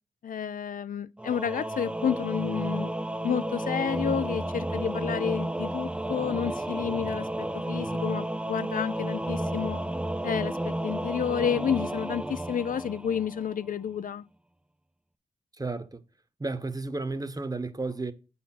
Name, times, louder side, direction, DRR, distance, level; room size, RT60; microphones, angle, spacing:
voice 1, 0.2-2.9 3.2-9.8 10.2-14.2, left 8 dB, 65° left, 0.5 m, -30 dB
Singing / Musical instrument, 1.2-13.6, right 1 dB, 5° right, 0.6 m, -32 dB
voice 2, 15.6-16.0 16.4-18.1, right 3 dB, 25° right, 1.0 m, -32 dB
8.2 x 4.2 x 5.8 m
cardioid pair, 45°, 15 cm